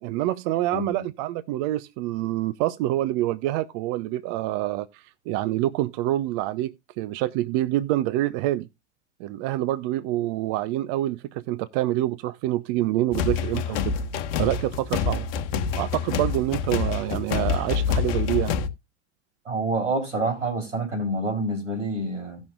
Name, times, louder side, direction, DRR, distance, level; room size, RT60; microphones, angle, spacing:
voice 1, 0.0-8.7 9.2-13.8 14.4-15.3 15.7-18.5, right 15 dB, 40° right, 0.5 m, -26 dB
voice 2, 0.7-1.0 19.5-22.4, right 2 dB, 80° right, 3.7 m, -27 dB
sound 1, 13.1-18.7, left 6 dB, 55° left, 1.1 m, -27 dB
17.5 x 6.2 x 2.4 m
figure-of-eight pair, 85°, 36 cm